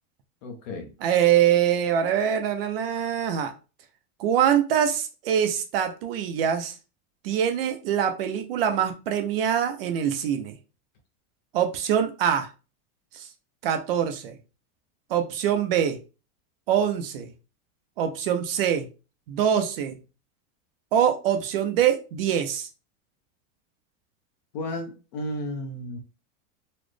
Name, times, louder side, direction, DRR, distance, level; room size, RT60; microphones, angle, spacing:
voice 1, 0.4-0.9 24.5-26.0, left 1 dB, 30° left, 0.4 m, -33 dB
voice 2, 1.0-3.5 4.2-6.8 7.2-10.5 11.5-12.5 13.1-13.3 13.6-14.3 15.1-16.0 16.7-17.3 18.0-18.9 19.3-20.0 20.9-22.7, right 9 dB, 45° right, 0.4 m, -24 dB
4.1 x 2.0 x 3.1 m
supercardioid pair, 170°, 43 cm